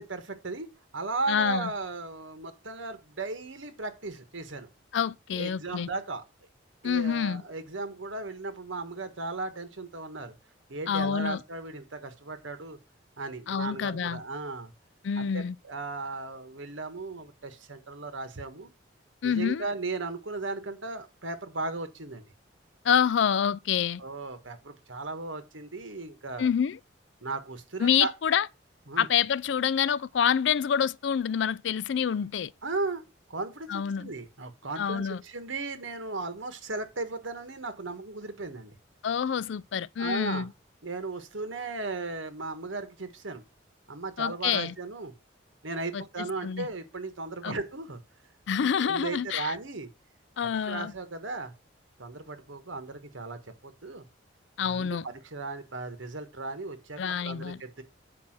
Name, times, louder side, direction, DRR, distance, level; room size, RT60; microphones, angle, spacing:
voice 1, 0.0-4.7 5.3-6.2 6.8-10.3 10.7-12.8 13.2-14.7 15.2-18.7 19.2-22.2 24.0-26.5 27.2-28.1 28.9-29.1 32.6-33.0 33.3-38.7 40.0-40.5 40.8-43.4 43.9-45.1 45.6-48.0 48.8-49.9 50.7-51.5 52.0-54.0 54.6-57.8, right 3 dB, 80° right, 1.5 m, -36 dB
voice 2, 1.3-1.7 4.9-5.9 6.8-7.4 10.9-11.4 13.5-14.2 15.0-15.6 19.2-19.6 22.8-24.0 26.4-26.8 27.8-28.5 29.0-32.5 33.7-34.1 34.8-35.2 39.0-40.5 44.2-44.7 45.9-46.7 47.4-47.6 48.5-49.5 50.4-50.9 54.6-55.1 57.0-57.6, left 7 dB, 65° left, 0.4 m, -27 dB
8.5 x 4.9 x 6.0 m
head